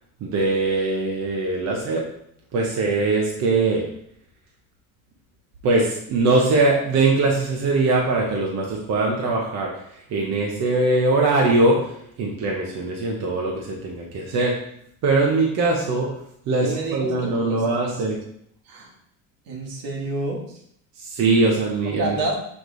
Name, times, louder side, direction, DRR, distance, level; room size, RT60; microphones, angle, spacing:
voice 1, 0.2-2.0 2.5-3.8 5.6-9.7 10.1-11.8 12.2-14.6 15.0-16.1 16.5-18.2 21.0-22.2, right 3 dB, 50° right, -2 dB, 1.1 m, -21 dB
voice 2, 16.6-18.0 18.6-18.9 19.4-20.4 21.8-22.3, right 2 dB, 75° right, 0 dB, 1.7 m, -29 dB
7.5 x 3.3 x 3.9 m, 0.70 s
cardioid pair, 155°, 35 cm